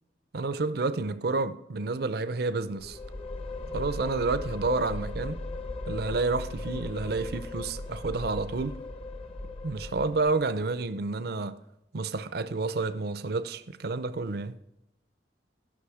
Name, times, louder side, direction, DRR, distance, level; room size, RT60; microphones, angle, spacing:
voice 1, 0.3-3.0 3.7-5.4 5.9-8.8 9.6-11.6 11.9-14.5, right 3 dB, 60° right, 0.6 m, -30 dB
sound 1, 2.8-10.6, left 2 dB, 35° left, 0.9 m, -37 dB
11.5 x 6.3 x 4.8 m
head